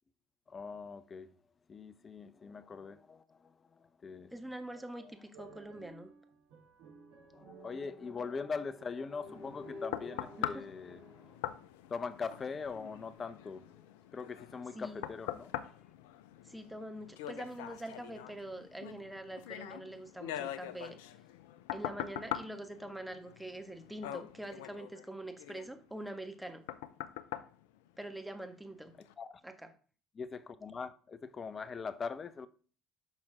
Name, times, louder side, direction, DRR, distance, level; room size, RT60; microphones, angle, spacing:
voice 1, 0.5-1.3 1.7-4.3 5.0-5.1 7.3-11.5 11.9-15.8 29.2-29.4 30.1-32.5, left 5 dB, 35° left, 0.7 m, -42 dB
voice 2, 4.3-6.1 10.4-10.6 14.7-15.0 16.4-21.0 21.7-26.6 28.0-28.9 29.4-29.5, right 1 dB, 5° right, 1.6 m, -44 dB
sound 1, 5.3-11.7, right 5 dB, 70° right, 3.7 m, -57 dB
sound 2, 9.2-28.5 29.0-29.1, left 12 dB, 75° left, 0.5 m, -44 dB
9.8 x 6.1 x 3.7 m
hypercardioid pair, 65°, 0 cm